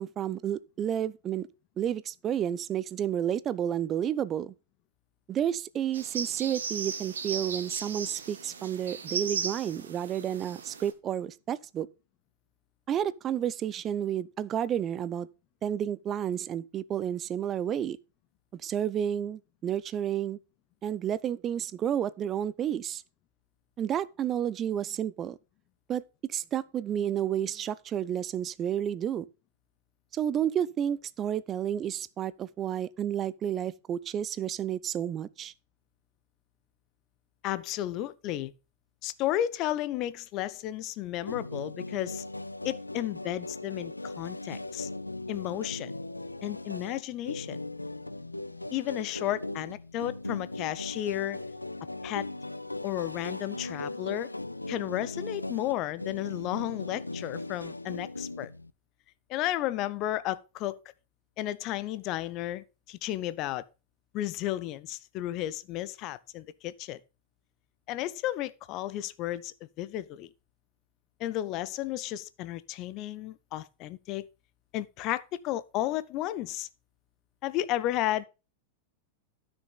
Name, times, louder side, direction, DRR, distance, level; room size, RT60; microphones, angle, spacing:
voice 1, 0.0-1.5 1.8-4.5 5.3-11.9 12.9-15.3 15.6-18.0 18.6-20.4 20.8-23.0 23.8-25.4 25.9-26.0 26.3-29.3 30.1-35.5, right 10 dB, 30° right, 0.5 m, -31 dB
sound 1, 5.9-10.9, right 6 dB, 65° right, 1.3 m, -37 dB
voice 2, 37.4-38.5 39.0-42.2 42.6-44.9 45.3-46.0 46.4-47.6 48.7-51.4 52.0-52.3 52.8-54.3 54.7-58.5 59.3-60.8 61.4-63.6 64.1-67.0 67.9-70.3 71.2-74.3 74.7-76.7 77.4-78.3, left 14 dB, 40° left, 0.6 m, -33 dB
sound 2, 41.2-58.7, left 2 dB, 85° left, 0.5 m, -38 dB
13.0 x 6.2 x 4.0 m
figure-of-eight pair, 90°, 0 cm